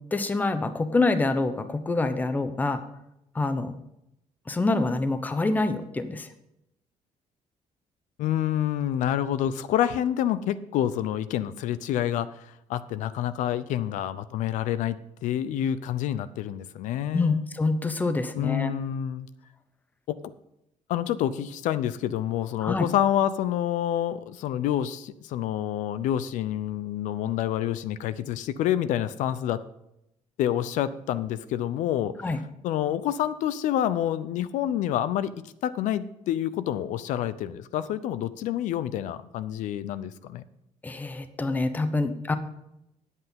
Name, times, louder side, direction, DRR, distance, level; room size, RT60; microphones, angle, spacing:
voice 1, 0.1-2.8 3.3-3.7 4.5-6.3 17.1-18.7 22.6-22.9 32.2-32.4 40.8-42.3, left 3 dB, 15° left, 10 dB, 0.7 m, -26 dB
voice 2, 8.2-17.4 18.3-19.3 20.1-20.2 20.9-29.6 30.4-32.2 32.6-35.3 35.6-40.4, left 11 dB, 90° left, 14 dB, 0.6 m, -28 dB
9.8 x 8.2 x 5.3 m, 0.83 s
cardioid pair, 165°, 13 cm